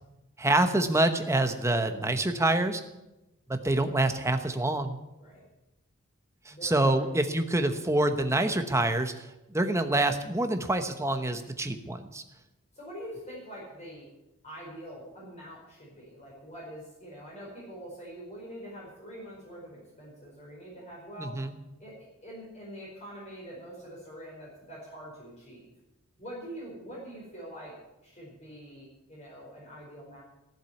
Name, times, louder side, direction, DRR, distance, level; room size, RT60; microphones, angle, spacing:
voice 1, 0.4-2.8 3.5-5.0 6.5-12.2 21.2-21.6, right 2 dB, 15° right, 8 dB, 1.0 m, -26 dB
voice 2, 6.5-7.1 12.7-14.1 14.4-21.4 21.8-21.9 22.2-25.7 26.2-27.7 28.0-30.2, equal, 30° left, -5 dB, 5.0 m, -44 dB
15.0 x 7.5 x 9.3 m, 0.97 s
head